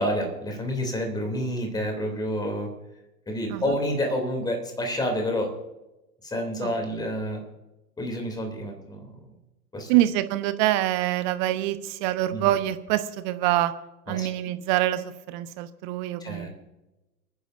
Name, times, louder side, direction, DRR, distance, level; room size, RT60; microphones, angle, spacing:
voice 1, 0.0-2.7 3.3-5.5 6.2-7.4 8.0-9.1 9.7-10.0 12.3-12.6 14.1-14.5 16.2-16.5, equal, 10° left, 3 dB, 3.0 m, -29 dB
voice 2, 9.9-13.7 14.1-16.5, right 14 dB, 30° right, 11 dB, 1.0 m, -25 dB
29.5 x 10.0 x 2.6 m, 1.0 s
figure-of-eight pair, 115°, 49 cm